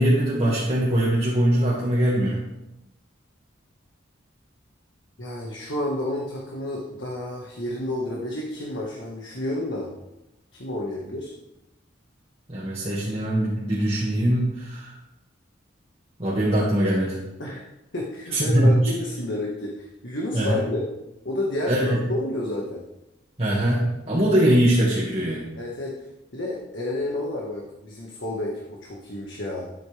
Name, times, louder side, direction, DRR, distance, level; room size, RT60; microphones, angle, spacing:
voice 1, 0.0-2.4 12.5-14.9 16.2-17.2 18.3-18.9 20.3-20.6 21.7-22.0 23.4-25.5, right 1 dB, 30° right, -7 dB, 2.1 m, -22 dB
voice 2, 5.2-9.9 10.5-11.3 17.4-17.6 17.9-20.9 21.2-22.8 25.6-25.9 26.3-29.7, left 1 dB, 75° left, -2 dB, 1.8 m, -30 dB
13.5 x 8.8 x 3.5 m, 0.93 s
head